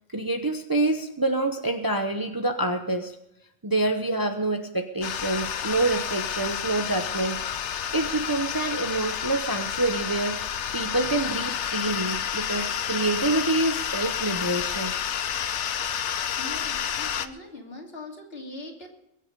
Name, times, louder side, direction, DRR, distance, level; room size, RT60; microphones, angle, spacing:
voice 1, 0.1-3.2 3.6-15.0, right 2 dB, 20° right, 5 dB, 0.8 m, -27 dB
sound 1, 5.0-17.3, left 9 dB, 70° left, 1.0 m, -30 dB
voice 2, 16.4-18.9, left 2 dB, 50° left, 1 dB, 2.9 m, -41 dB
22.0 x 8.0 x 5.3 m, 0.83 s
omnidirectional pair, 1.3 m